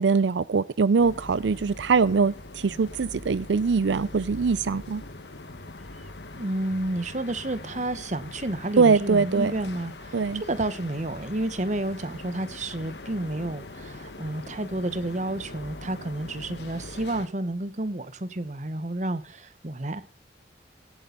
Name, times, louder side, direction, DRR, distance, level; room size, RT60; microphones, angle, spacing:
voice 1, 0.0-5.0 8.8-9.5 10.1-10.4, right 5 dB, 90° right, 0.5 m, -22 dB
sound 1, 1.0-17.3, left 2 dB, 75° left, 1.4 m, -42 dB
voice 2, 6.3-20.0, right 1 dB, 40° right, 1.1 m, -30 dB
17.5 x 8.7 x 4.0 m
head